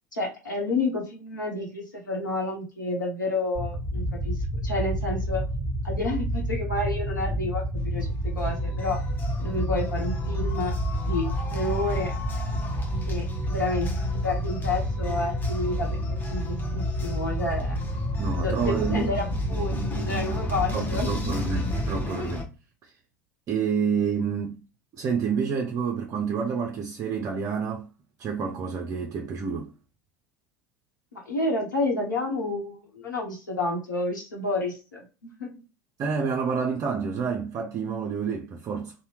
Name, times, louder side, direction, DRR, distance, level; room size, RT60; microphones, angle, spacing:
voice 1, 0.1-4.4 4.6-5.4 5.8-9.0 9.4-10.7 11.0-12.1 13.1-15.9 16.3-17.8 18.4-21.4 31.1-35.5, left 2 dB, 80° left, 0.9 m, -30 dB
sound 1, 3.5-22.0, equal, 40° left, 0.9 m, -29 dB
sound 2, 7.8-22.5, left 4 dB, 20° left, 0.7 m, -37 dB
voice 2, 18.2-19.1 20.7-22.5 23.5-24.6 24.9-27.9 28.2-29.7 36.0-38.9, right 6 dB, 35° right, 0.5 m, -28 dB
2.7 x 2.1 x 3.1 m
figure-of-eight pair, 75°, 10 cm